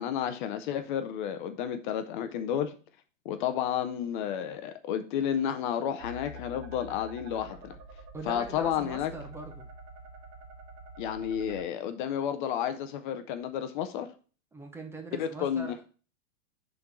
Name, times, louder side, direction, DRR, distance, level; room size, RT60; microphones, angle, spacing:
voice 1, 0.0-2.8 3.2-7.7 8.3-9.1 11.0-14.1 15.2-15.8, left 9 dB, 40° left, 0.7 m, -31 dB
sound 1, 6.0-11.6, right 1 dB, 35° right, 1.7 m, -46 dB
voice 2, 8.1-9.7 14.5-15.8, right 2 dB, 5° right, 0.7 m, -42 dB
7.0 x 3.9 x 5.9 m
hypercardioid pair, 140°, 40 cm